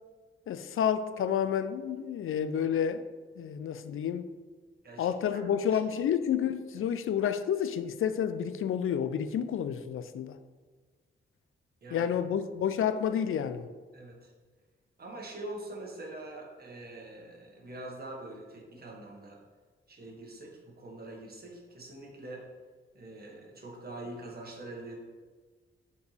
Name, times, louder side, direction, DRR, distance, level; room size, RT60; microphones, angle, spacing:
voice 1, 0.5-3.0 3.4-4.3 5.0-10.4 11.9-13.7, left 8 dB, 80° left, 0.4 m, -30 dB
voice 2, 4.8-5.4 5.7-5.8 6.7-6.8 11.8-12.1 13.9-14.3 15.0-19.4 19.9-22.4 22.9-24.9, right 2 dB, 45° right, 1.5 m, -44 dB
7.0 x 4.5 x 3.3 m
wide cardioid pair, 100°, 21 cm